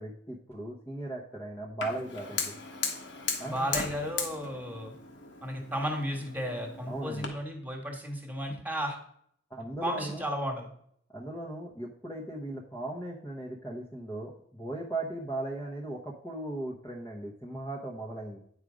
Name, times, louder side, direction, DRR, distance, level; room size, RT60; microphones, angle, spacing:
voice 1, 0.0-2.6 3.4-3.6 6.9-7.3 9.5-10.2 11.1-18.4, right 2 dB, 10° left, -3 dB, 1.0 m, -37 dB
Fire, 1.8-7.3, left 5 dB, 70° left, 1.5 m, -37 dB
voice 2, 3.4-4.9 5.4-9.0 9.8-10.7, equal, 10° right, 2 dB, 1.6 m, -34 dB
9.1 x 4.9 x 5.1 m, 0.68 s
head